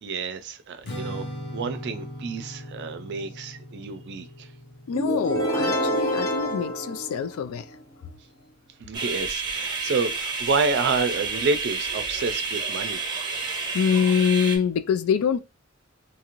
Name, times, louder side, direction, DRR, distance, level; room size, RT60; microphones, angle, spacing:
voice 1, 0.0-1.2 1.5-4.5 8.8-13.0, right 4 dB, 55° right, 0.4 m, -29 dB
Strum, 0.8-7.1, equal, 55° left, 0.9 m, -39 dB
voice 2, 4.9-7.7 13.7-15.4, left 7 dB, 85° left, 0.3 m, -24 dB
sound 1, 4.9-7.8, equal, 15° left, 0.7 m, -27 dB
sound 2, 8.9-14.6, right 4 dB, 20° right, 0.7 m, -30 dB
2.8 x 2.5 x 2.9 m
head